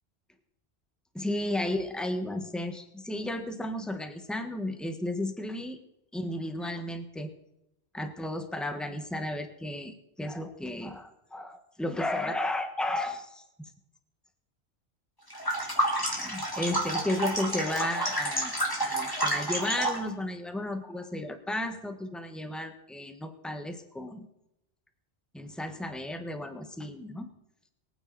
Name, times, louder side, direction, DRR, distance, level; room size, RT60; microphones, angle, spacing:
voice 1, 1.1-5.8 6.1-7.3 7.9-13.7 15.9-24.3 25.3-27.3, left 1 dB, ahead, 6 dB, 1.3 m, -34 dB
sound 1, 15.3-20.1, right 1 dB, 20° left, 3.2 m, -29 dB
23.5 x 9.4 x 4.1 m, 0.85 s
omnidirectional pair, 1.1 m